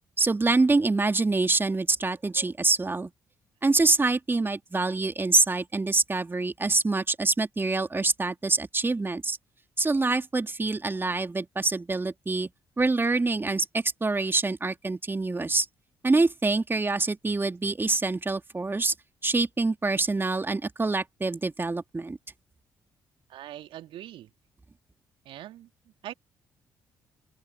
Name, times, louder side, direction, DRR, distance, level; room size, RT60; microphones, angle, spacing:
voice 1, 0.2-3.1 3.6-9.4 9.8-12.5 12.8-15.7 16.0-18.9 19.2-22.2, right 3 dB, 20° right, 2.4 m, -25 dB
voice 2, 23.3-24.3 25.2-26.1, right 13 dB, 60° right, 2.3 m, -42 dB
open air
figure-of-eight pair, 45°, 10 cm